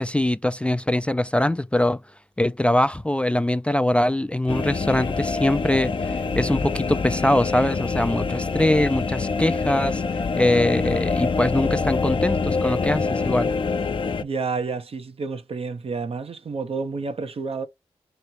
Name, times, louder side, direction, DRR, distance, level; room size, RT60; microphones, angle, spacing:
voice 1, 0.0-2.0 2.4-10.0 10.4-13.5, left 1 dB, 10° left, 0.4 m, -22 dB
sound 1, 4.5-14.2, left 4 dB, 50° left, 0.6 m, -25 dB
voice 2, 14.2-17.7, right 4 dB, 60° right, 0.8 m, -29 dB
3.2 x 2.7 x 4.5 m
supercardioid pair, 40°, 11 cm